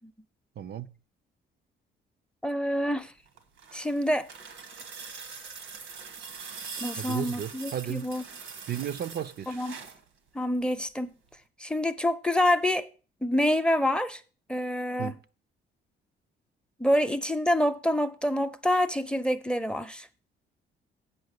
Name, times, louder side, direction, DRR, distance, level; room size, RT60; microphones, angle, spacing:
voice 1, 0.6-0.9 7.0-8.1 8.7-9.6 15.0-15.2, right 10 dB, 55° right, 0.6 m, -34 dB
voice 2, 2.4-3.1 3.7-4.3 6.8-8.2 9.5-9.8 10.3-11.1 11.6-12.9 13.2-14.2 14.5-15.2 16.8-20.1, left 1 dB, 5° left, 0.7 m, -27 dB
sound 1, 3.3-10.0 11.3-11.4, right 5 dB, 90° right, 1.4 m, -43 dB
8.3 x 5.5 x 6.6 m
cardioid pair, 90°, 20 cm